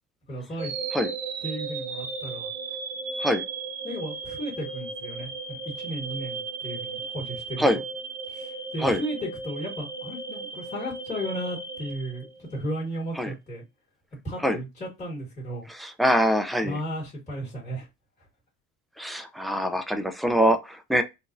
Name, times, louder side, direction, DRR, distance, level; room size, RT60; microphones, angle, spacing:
voice 1, 0.3-0.7 1.4-2.5 3.8-7.6 8.3-13.6 14.2-15.7 16.6-17.9, equal, 20° left, 1.6 m, -35 dB
sound 1, 0.6-12.7, right 4 dB, 55° right, 0.9 m, -36 dB
voice 2, 15.7-16.8 19.0-21.0, equal, ahead, 0.4 m, -24 dB
3.8 x 2.4 x 2.6 m
cardioid pair, 130°, 32 cm